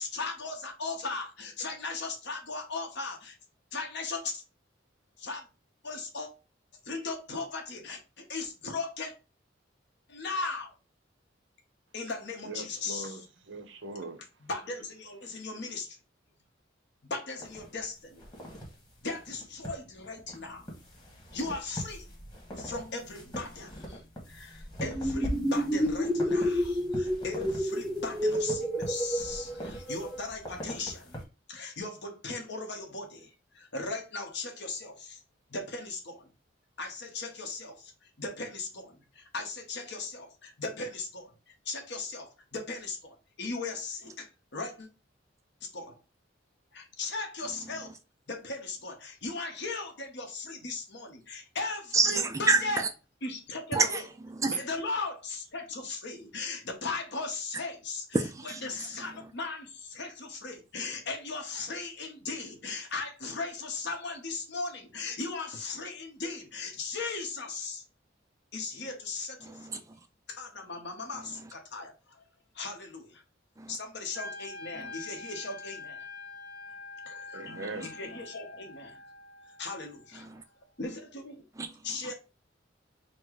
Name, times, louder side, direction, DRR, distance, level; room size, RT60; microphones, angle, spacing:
voice 1, 0.0-3.4 3.7-4.4 5.2-5.5 5.8-6.3 6.8-9.1 10.1-10.7 11.9-13.2 14.4-16.0 17.0-18.2 19.0-20.7 21.3-22.1 22.6-24.0 24.3-31.2 31.5-35.2 35.5-36.3 36.8-44.9 45.6-46.0 46.7-48.0 48.3-52.8 53.2-54.0 54.5-58.0 58.6-67.8 68.5-69.8 70.3-72.2 72.5-73.2 73.7-76.1 77.0-77.6 77.9-79.0 79.6-80.3 80.8-81.4 81.8-82.1, left 3 dB, 65° left, 1.1 m, -38 dB
voice 2, 12.4-14.2 77.3-77.9, right 2 dB, 75° right, 0.8 m, -41 dB
sound 1, 17.4-31.2, equal, 25° left, 1.4 m, -43 dB
sound 2, 24.8-30.2, equal, 5° left, 0.7 m, -30 dB
voice 3, 47.4-48.0 51.9-52.9 53.7-54.6 58.1-59.3 69.4-70.1 71.1-71.5 73.6-73.8 74.7-74.9 77.4-78.2 80.1-80.4 81.5-82.1, right 4 dB, 15° right, 0.3 m, -31 dB
Wind instrument woodwind instrument, 74.1-80.2, left 3 dB, 80° left, 1.4 m, -45 dB
4.3 x 2.1 x 4.6 m
head